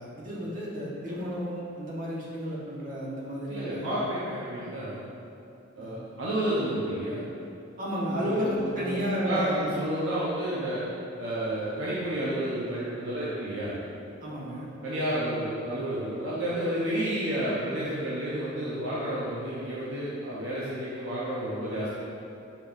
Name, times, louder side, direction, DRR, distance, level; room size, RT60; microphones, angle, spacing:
voice 1, 0.0-4.0 5.8-5.9 7.8-9.8 14.2-14.7, equal, 45° right, -6 dB, 1.3 m, -32 dB
voice 2, 3.5-5.0 5.8-7.2 8.1-10.8 11.2-13.7 14.8-21.9, right 1 dB, 65° right, -8 dB, 0.9 m, -31 dB
6.7 x 5.4 x 2.6 m, 2.7 s
head